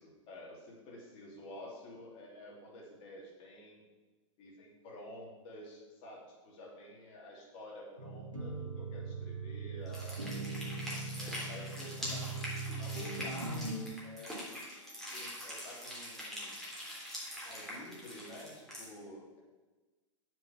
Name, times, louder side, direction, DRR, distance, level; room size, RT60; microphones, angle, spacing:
voice 1, 0.0-3.8 4.4-10.7 11.2-13.6 14.0-14.3 15.1-16.6 17.4-19.4, left 1 dB, 35° left, -2 dB, 2.8 m, -50 dB
sound 1, 8.0-13.9, right 3 dB, 80° right, 1.6 m, -40 dB
sound 2, 9.9-18.8, equal, ahead, 3.2 m, -43 dB
7.5 x 5.3 x 7.3 m, 1.3 s
figure-of-eight pair, 100°, 16 cm